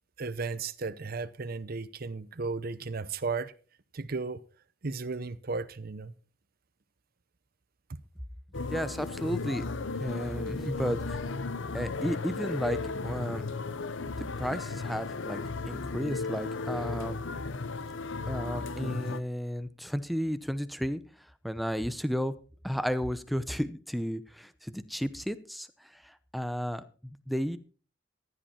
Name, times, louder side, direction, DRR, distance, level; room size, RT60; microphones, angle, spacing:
voice 1, 0.2-3.5 3.9-4.4 4.8-6.1, right 4 dB, 50° right, 0.8 m, -35 dB
sound 1, 8.5-19.2, left 3 dB, 75° left, 0.8 m, -35 dB
voice 2, 8.7-9.6 9.9-11.2 11.7-12.8 13.0-13.5 14.2-15.4 15.7-17.2 18.3-21.0 21.4-22.3 22.6-25.7 26.0-27.6, equal, ahead, 0.8 m, -33 dB
15.0 x 11.5 x 4.4 m
head